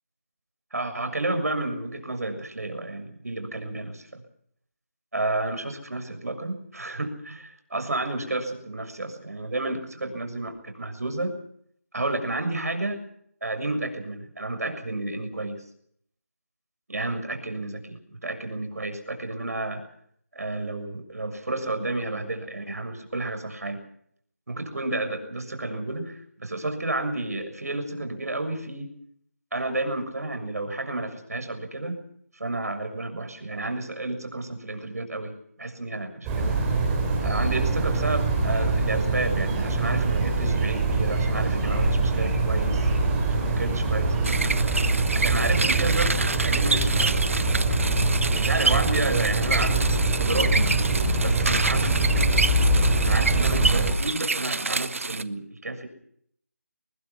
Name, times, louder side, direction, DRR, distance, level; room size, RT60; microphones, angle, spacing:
voice 1, 0.7-4.2 5.1-11.4 11.9-13.0 13.4-15.6 16.9-19.8 20.3-23.8 24.5-28.9 29.5-32.0 32.3-35.3 35.6-36.5 37.2-42.9 43.3-44.1 45.1-47.2 48.3-50.7 51.2-52.2 53.0-55.9, right 2 dB, 70° right, 7 dB, 6.8 m, -31 dB
sound 1, 36.2-53.9, right 2 dB, 10° right, 3.8 m, -24 dB
sound 2, 44.2-55.2, right 3 dB, 55° right, 1.2 m, -28 dB
23.0 x 21.0 x 5.9 m, 0.66 s
figure-of-eight pair, 170°, 9 cm